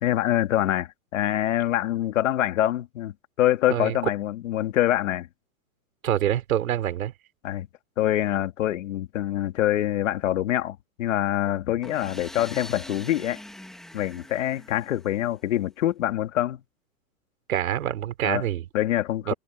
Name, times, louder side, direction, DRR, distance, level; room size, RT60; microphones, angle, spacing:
voice 1, 0.0-5.3 7.4-7.7 8.0-13.4 13.9-16.6 18.2-18.5 18.7-19.3, left 13 dB, 65° left, 2.4 m, -25 dB
voice 2, 6.0-7.1 17.5-18.6 19.3-19.4, right 11 dB, 85° right, 3.4 m, -26 dB
sound 1, 11.8-15.6, left 1 dB, ahead, 0.9 m, -44 dB
supercardioid pair, 175°, 40 cm